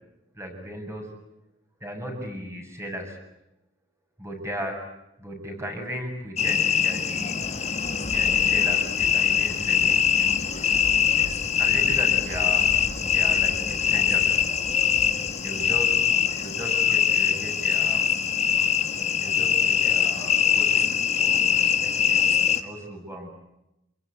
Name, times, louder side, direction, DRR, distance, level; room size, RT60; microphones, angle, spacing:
voice 1, 0.3-1.1 1.8-3.2 4.2-4.8 5.2-7.6 8.0-10.4 11.6-12.8 13.0-14.3 15.4-16.0 16.3-18.1 19.2-20.9 21.2-23.3, equal, 15° right, 3 dB, 7.5 m, -36 dB
sound 1, 6.4-22.6, left 8 dB, 35° left, 2.0 m, -23 dB
Thunder, 7.0-17.6, equal, 15° left, 5.4 m, -41 dB
28.0 x 22.0 x 9.6 m, 0.90 s
head